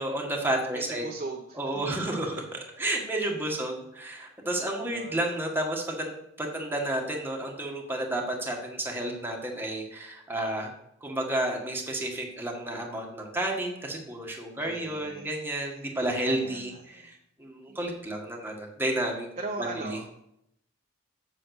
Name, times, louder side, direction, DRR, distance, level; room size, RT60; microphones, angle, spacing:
voice 1, 0.0-1.1 1.6-10.7 11.0-19.3 19.6-20.0, right 1 dB, 10° right, 0 dB, 1.7 m, -31 dB
voice 2, 0.7-1.9 3.4-3.6 4.9-5.2 14.6-15.3 16.3-17.1 17.7-17.8 19.4-20.1, right 2 dB, 35° right, -1 dB, 1.1 m, -39 dB
7.8 x 7.1 x 6.5 m, 0.78 s
head